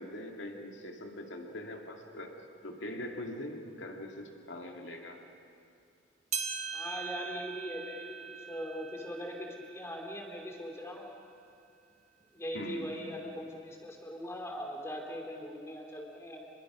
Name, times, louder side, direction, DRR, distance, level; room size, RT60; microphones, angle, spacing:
voice 1, 0.0-2.3 2.6-5.2 12.5-12.9, left 1 dB, 70° left, 3 dB, 2.4 m, -42 dB
sound 1, 6.3-11.0 11.5-11.6 12.4-12.5 13.4-13.5, right 6 dB, 35° right, 1.4 m, -41 dB
voice 2, 6.7-11.1 12.3-16.4, equal, 15° left, 1 dB, 2.7 m, -40 dB
27.5 x 21.5 x 6.2 m, 2.5 s
head